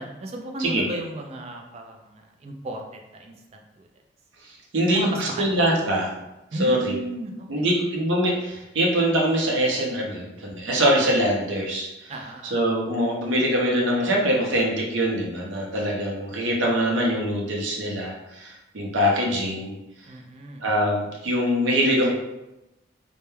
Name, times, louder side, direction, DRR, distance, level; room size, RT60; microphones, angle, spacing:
voice 1, 0.0-3.9 4.9-5.6 6.5-7.9 12.1-12.6 20.1-20.6, right 2 dB, 35° right, 2 dB, 0.3 m, -34 dB
voice 2, 4.7-6.1 6.6-7.0 7.5-12.1 12.5-19.7 20.6-22.1, equal, 75° right, -2 dB, 0.6 m, -23 dB
2.2 x 2.1 x 3.0 m, 0.94 s
head